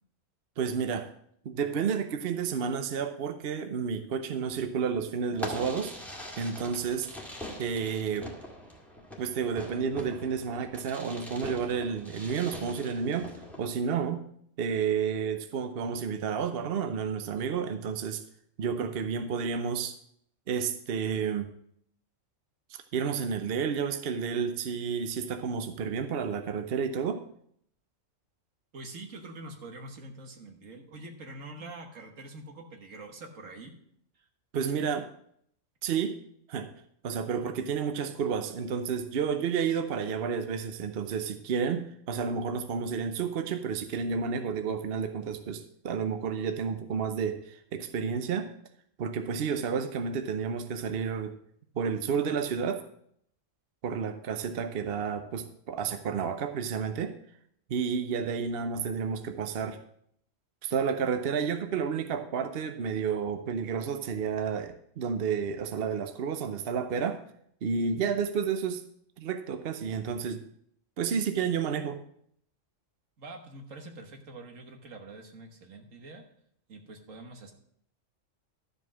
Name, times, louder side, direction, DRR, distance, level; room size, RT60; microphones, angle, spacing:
voice 1, 0.6-1.1 1.4-5.9 6.4-7.1 7.6-8.3 9.2-13.3 13.6-14.2 14.6-18.2 18.6-20.0 20.5-21.5 22.7-27.2 34.5-35.1 35.8-36.2 36.5-36.7 37.0-48.5 49.0-51.3 51.7-52.8 53.8-57.1 57.7-59.8 60.6-67.2 67.6-68.8 69.2-70.4 71.0-72.0, right 6 dB, 55° right, 7 dB, 0.8 m, -31 dB
Fireworks, 5.3-13.7, left 1 dB, ahead, 1.7 m, -42 dB
voice 2, 28.7-33.8 34.2-34.3 73.2-76.3 76.7-77.5, right 2 dB, 75° right, 4 dB, 1.7 m, -45 dB
12.0 x 5.2 x 6.2 m, 0.68 s
omnidirectional pair, 1.3 m